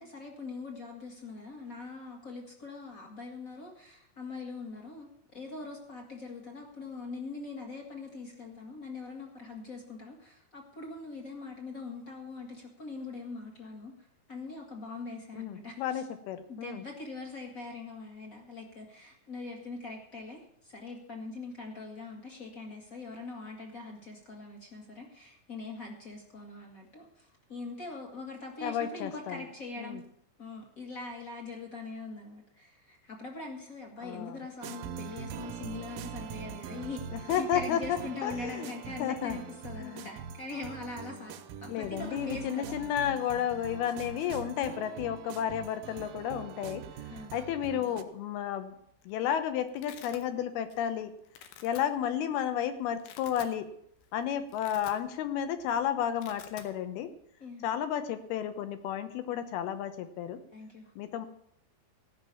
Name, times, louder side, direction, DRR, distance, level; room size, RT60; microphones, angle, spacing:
voice 1, 0.0-16.0 16.5-30.0 30.4-37.0 37.4-41.4 41.6-42.9 47.1-47.3 57.4-57.7 60.5-60.9, left 3 dB, 45° left, 1 dB, 1.1 m, -42 dB
voice 2, 15.3-16.8 28.6-29.4 29.8-30.0 34.0-34.4 37.1-38.7 39.0-39.4 39.8-40.1 41.7-48.7 49.1-51.1 51.6-53.7 54.1-57.1 57.6-60.4 61.0-61.3, left 9 dB, 70° left, 10 dB, 2.7 m, -32 dB
sound 1, 34.6-48.0, right 7 dB, 75° right, 2.1 m, -43 dB
Domestic sounds home sounds, 48.8-49.1 49.4-50.2 50.7-51.0 51.3-51.8 52.4-52.5 52.9-53.6 54.0-54.1 54.4-55.4 55.6-55.8 56.0-56.7, left 9 dB, 90° left, 3.5 m, -50 dB
15.5 x 6.1 x 8.5 m, 0.69 s
omnidirectional pair, 5.1 m